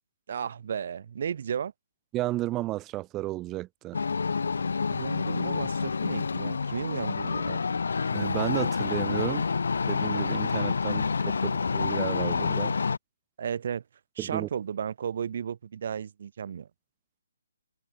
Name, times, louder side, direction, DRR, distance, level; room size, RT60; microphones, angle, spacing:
voice 1, 0.3-1.7 4.9-7.8 13.4-13.8 14.1-16.7, right 8 dB, 50° right, 3.4 m, -34 dB
voice 2, 2.1-4.0 8.1-9.4 9.9-12.7 14.2-14.5, right 16 dB, 20° right, 1.5 m, -33 dB
sound 1, 3.9-13.0, left 5 dB, 65° left, 0.8 m, -28 dB
figure-of-eight pair, 140°, 0 cm